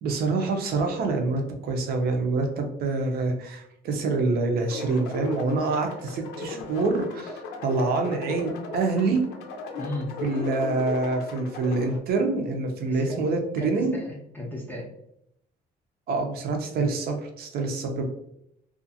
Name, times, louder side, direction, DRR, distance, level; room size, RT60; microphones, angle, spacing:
voice 1, 0.0-9.2 10.2-14.0 16.1-18.0, right 3 dB, 65° right, 4 dB, 0.6 m, -26 dB
sound 1, 4.6-12.0, left 4 dB, 85° left, 0.5 m, -36 dB
voice 2, 9.8-10.1 12.9-13.3 13.6-14.9, left 1 dB, 10° left, -3 dB, 0.6 m, -35 dB
2.5 x 2.3 x 2.7 m, 0.76 s
cardioid pair, 110°, 17 cm